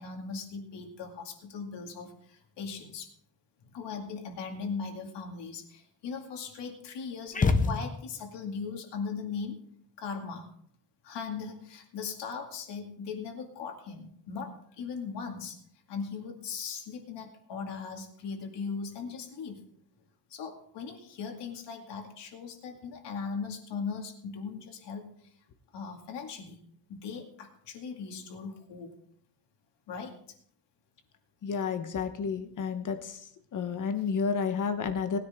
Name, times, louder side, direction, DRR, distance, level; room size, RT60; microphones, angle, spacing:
voice 1, 0.0-3.1 3.6-9.6 10.0-10.5 11.0-15.6 15.9-19.6 20.3-25.1 25.7-26.6 26.9-28.9 29.9-30.1, left 5 dB, 85° left, 3 dB, 2.4 m, -39 dB
sound 1, 7.3-8.4, left 4 dB, 20° left, 0.7 m, -26 dB
voice 2, 31.4-33.0 33.5-35.2, left 6 dB, 50° left, 8 dB, 1.2 m, -30 dB
19.5 x 9.9 x 3.7 m, 0.65 s
cardioid pair, 170°, 41 cm